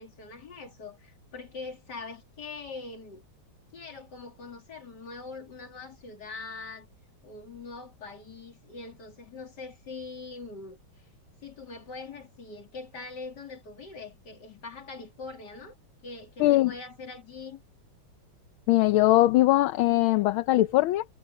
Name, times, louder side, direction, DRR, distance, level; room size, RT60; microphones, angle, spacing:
voice 1, 0.0-3.2 3.7-6.9 7.2-10.8 11.4-15.8 16.0-17.6, left 4 dB, 50° left, 3.3 m, -42 dB
voice 2, 16.4-16.7 18.7-21.0, left 16 dB, 75° left, 1.5 m, -21 dB
omnidirectional pair, 2.3 m